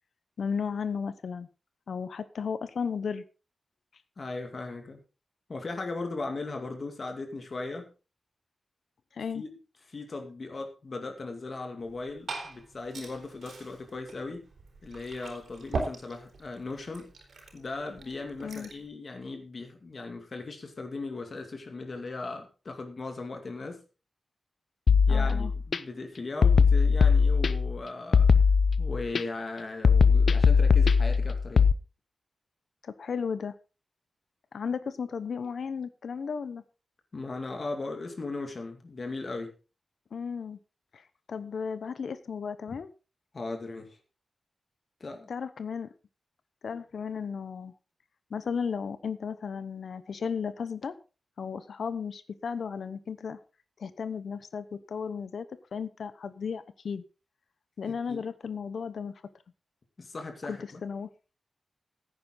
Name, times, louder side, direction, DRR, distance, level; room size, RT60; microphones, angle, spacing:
voice 1, 0.4-1.5 1.9-3.2 9.1-9.4 18.4-18.7 25.1-25.5 32.8-33.5 34.5-36.6 40.1-40.6 40.9-42.9 45.3-45.9 46.6-47.7 48.3-51.0 51.4-53.4 53.8-55.5 55.7-57.0 57.8-59.1 60.4-61.1, left 6 dB, 75° left, 13 dB, 0.9 m, -34 dB
voice 2, 4.2-5.0 5.5-7.9 9.3-9.5 9.9-14.4 14.8-17.1 17.5-23.8 25.1-28.3 28.8-31.7 37.1-39.5 42.7-42.8 43.3-44.0 45.0-45.3 58.1-58.2 60.0-60.8, left 3 dB, 40° left, 4 dB, 2.2 m, -38 dB
Glass / Fill (with liquid), 11.8-18.9, right 3 dB, 90° right, 4.2 m, -41 dB
sound 1, 24.9-25.8 26.4-27.8 28.1-29.2 29.8-31.7, left 5 dB, 60° left, 0.6 m, -20 dB
16.5 x 9.5 x 3.9 m, 0.32 s
wide cardioid pair, 170°, 0 cm